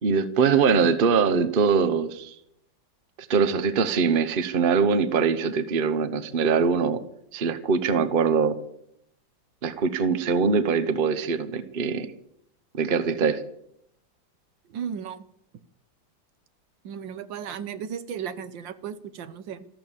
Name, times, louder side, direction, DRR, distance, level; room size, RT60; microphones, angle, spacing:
voice 1, 0.0-2.3 3.2-7.0 7.3-8.6 9.6-12.1 12.7-13.4, right 5 dB, 35° right, 13 dB, 1.0 m, -22 dB
voice 2, 14.7-15.2 16.8-19.7, right 8 dB, 75° right, 13 dB, 1.6 m, -35 dB
14.0 x 13.0 x 7.3 m, 0.73 s
omnidirectional pair, 2.1 m